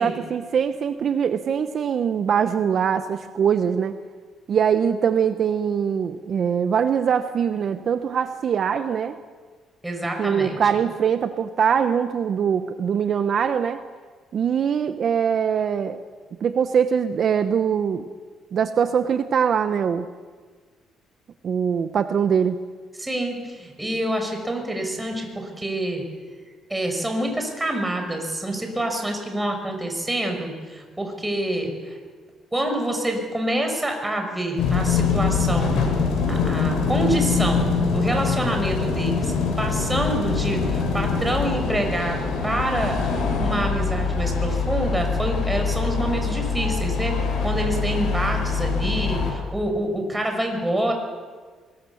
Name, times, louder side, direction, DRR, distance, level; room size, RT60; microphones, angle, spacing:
voice 1, 0.0-4.0 4.5-9.2 10.2-13.8 14.3-16.0 16.4-18.0 18.5-20.1 21.4-22.6, right 7 dB, 50° right, 9 dB, 0.9 m, -22 dB
voice 2, 9.8-10.6 23.0-26.0 26.7-32.0 32.5-35.9 36.3-43.0 43.4-50.9, right 1 dB, 10° right, 4 dB, 5.6 m, -27 dB
sound 1, 34.6-49.3, left 5 dB, 70° left, 7.3 m, -24 dB
24.0 x 21.0 x 7.1 m, 1.5 s
cardioid pair, 100°, 0 cm